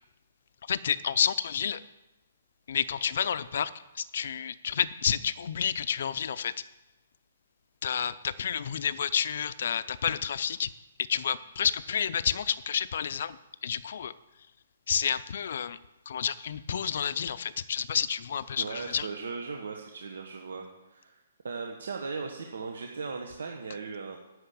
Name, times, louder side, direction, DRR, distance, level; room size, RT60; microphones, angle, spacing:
voice 1, 0.7-1.8 2.7-3.7 4.0-6.5 7.8-10.7 11.1-14.1 14.9-15.8 16.1-19.1, left 8 dB, 50° left, 16 dB, 0.5 m, -30 dB
voice 2, 18.6-20.6 20.9-24.2, right 4 dB, 80° right, 2 dB, 1.3 m, -38 dB
9.6 x 6.2 x 8.4 m, 1.0 s
hypercardioid pair, 175°, 0 cm